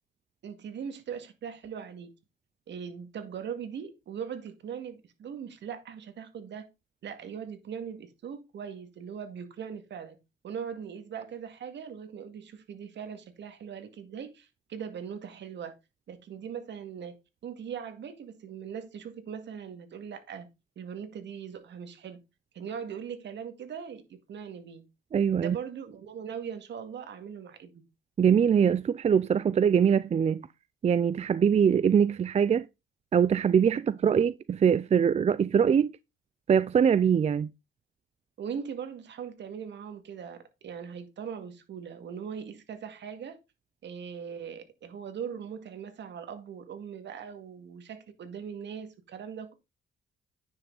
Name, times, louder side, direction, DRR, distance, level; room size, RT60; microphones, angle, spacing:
voice 1, 0.4-2.1 2.7-6.7 7.0-10.2 10.4-15.8 16.1-17.2 17.4-20.5 20.8-22.2 22.5-24.8 25.4-27.8 33.7-33.8 38.4-43.4 43.8-49.5, right 7 dB, 65° right, 2.1 m, -40 dB
voice 2, 25.1-25.6 28.2-30.5 30.8-32.7 33.1-35.9 36.5-37.5, right 7 dB, 35° right, 0.4 m, -23 dB
9.7 x 6.2 x 3.9 m
cardioid pair, 90°, 20 cm